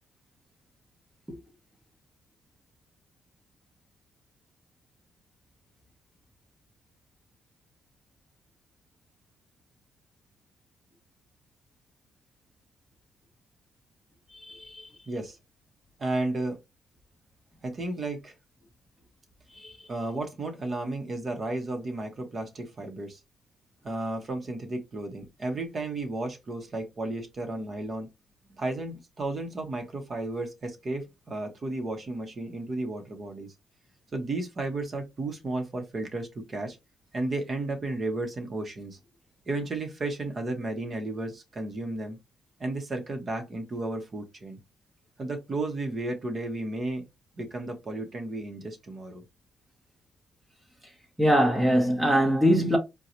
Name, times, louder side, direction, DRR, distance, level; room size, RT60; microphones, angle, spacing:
voice 1, 14.4-14.8 19.6-19.7 51.2-52.8, equal, 10° right, 0.8 m, -22 dB
voice 2, 15.1-15.4 16.0-16.6 17.6-18.3 19.9-23.2 23.8-28.1 28.6-33.5 34.1-36.8 37.1-39.0 39.5-42.2 42.6-44.6 45.2-47.0 47.3-49.2, right 2 dB, 40° right, 0.9 m, -33 dB
3.8 x 2.3 x 2.9 m
cardioid pair, 90°, 0 cm